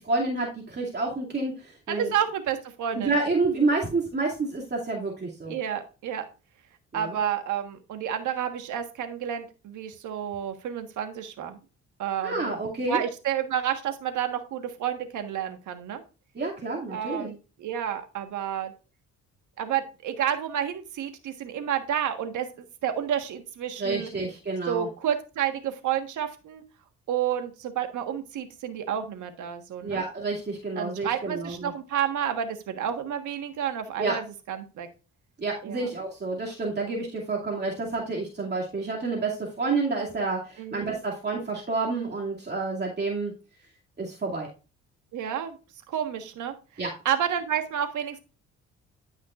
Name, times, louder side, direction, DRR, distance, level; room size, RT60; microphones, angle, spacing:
voice 1, 0.1-2.1 2.9-5.5 6.9-7.2 12.2-13.0 16.3-17.3 23.8-24.9 29.8-31.7 34.0-34.1 35.4-43.3 44.0-44.5 46.8-46.9, right 3 dB, 35° right, -3 dB, 2.5 m, -29 dB
voice 2, 1.9-3.1 5.5-6.3 6.9-11.6 12.0-12.5 12.9-16.0 16.9-18.7 19.6-24.1 24.7-26.6 27.1-30.0 30.8-34.9 35.6-35.9 40.6-41.0 45.1-45.6 45.9-48.2, right 9 dB, 75° right, 7 dB, 1.5 m, -30 dB
12.5 x 5.7 x 2.5 m, 0.32 s
cardioid pair, 90°, 30 cm